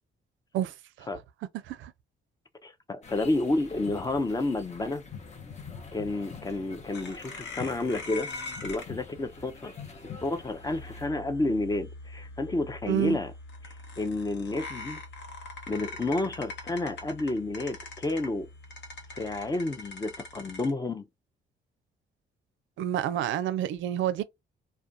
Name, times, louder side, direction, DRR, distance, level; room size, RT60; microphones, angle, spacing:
voice 1, 0.5-1.1 1.6-1.9 12.9-13.2 22.8-24.2, right 11 dB, 75° right, 0.4 m, -29 dB
voice 2, 2.6-5.0 5.9-8.3 8.6-9.7 10.2-13.3 13.6-15.0 15.7-18.5 19.1-21.1, left 2 dB, 20° left, 0.4 m, -30 dB
sound 1, 3.0-11.1, left 5 dB, 35° left, 0.8 m, -45 dB
sound 2, 6.9-20.7, left 3 dB, 65° left, 0.9 m, -43 dB
2.4 x 2.2 x 2.6 m
cardioid pair, 90°, 20 cm